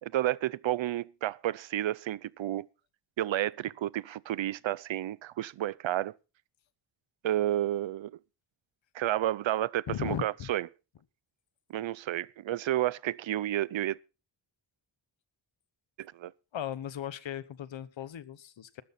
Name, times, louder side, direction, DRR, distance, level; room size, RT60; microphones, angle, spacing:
voice 1, 0.0-2.7 3.2-6.1 7.2-8.1 8.9-10.7 11.7-14.0 16.0-16.3, right 13 dB, 90° right, 0.7 m, -31 dB
voice 2, 9.9-10.5 16.5-18.8, left 10 dB, 90° left, 1.1 m, -37 dB
15.5 x 13.0 x 4.2 m
wide cardioid pair, 120°, 44 cm